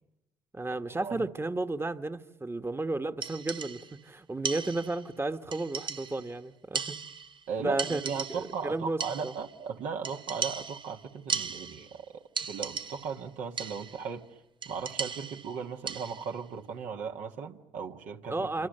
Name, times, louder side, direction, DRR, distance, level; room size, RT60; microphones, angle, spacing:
voice 1, 0.5-7.0 7.6-9.3 18.3-18.7, right 2 dB, 20° right, 9 dB, 1.3 m, -33 dB
sound 1, 3.2-4.0 4.4-5.1 5.5-6.3 6.7-7.5 7.8-8.6 9.0-9.6 10.0-12.0 12.4-13.2 13.6-14.1 14.6-16.4, right 5 dB, 40° right, 0.9 m, -37 dB
voice 2, 7.5-12.0 12.5-14.2 14.6-18.7, right 6 dB, 75° right, 2 dB, 1.7 m, -37 dB
27.5 x 26.5 x 6.7 m, 0.95 s
hypercardioid pair, 55°, 13 cm